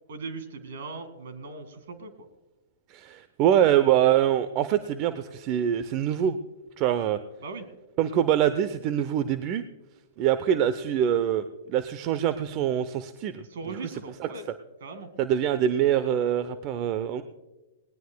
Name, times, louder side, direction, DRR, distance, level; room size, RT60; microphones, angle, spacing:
voice 1, 0.1-2.3 7.4-7.7 13.5-14.5 14.8-15.1, right 3 dB, 70° right, 10 dB, 2.0 m, -39 dB
voice 2, 2.9-6.4 6.8-7.2 8.0-9.6 10.2-11.4 11.7-13.4 15.2-17.2, right 10 dB, 40° right, 12 dB, 0.6 m, -24 dB
20.0 x 18.5 x 2.2 m, 1.1 s
hypercardioid pair, 115°, 0 cm